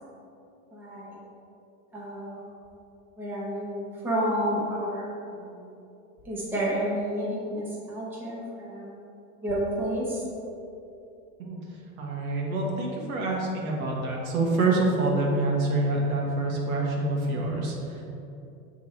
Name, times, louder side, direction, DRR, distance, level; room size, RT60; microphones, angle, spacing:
voice 1, 0.7-1.2 1.9-2.4 3.2-5.7 6.2-9.0 9.4-10.2, equal, 5° right, -7 dB, 0.8 m, -30 dB
voice 2, 12.0-18.0, right 2 dB, 85° right, -2 dB, 1.5 m, -26 dB
6.5 x 3.6 x 4.3 m, 2.7 s
supercardioid pair, 160°, 41 cm